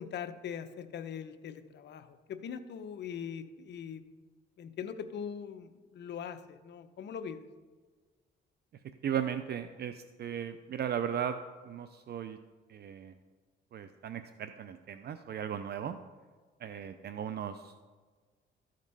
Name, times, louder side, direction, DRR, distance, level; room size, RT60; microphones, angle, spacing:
voice 1, 0.0-4.0 4.6-7.4, left 7 dB, 60° left, 10 dB, 0.8 m, -41 dB
voice 2, 9.0-11.4 11.6-12.4 12.7-13.1 13.7-16.0 16.6-17.8, right 9 dB, 55° right, 10 dB, 0.5 m, -36 dB
13.5 x 5.2 x 5.4 m, 1.4 s
cardioid pair, 90°, 20 cm